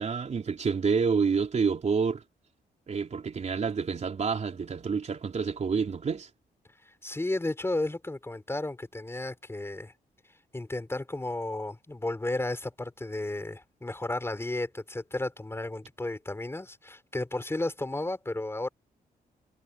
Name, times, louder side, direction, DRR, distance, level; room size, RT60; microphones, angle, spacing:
voice 1, 0.0-2.2 2.9-6.3, right 5 dB, 45° right, 3.5 m, -28 dB
voice 2, 6.8-9.9 10.5-18.7, left 2 dB, 15° left, 5.5 m, -33 dB
cardioid pair, 100°, 16 cm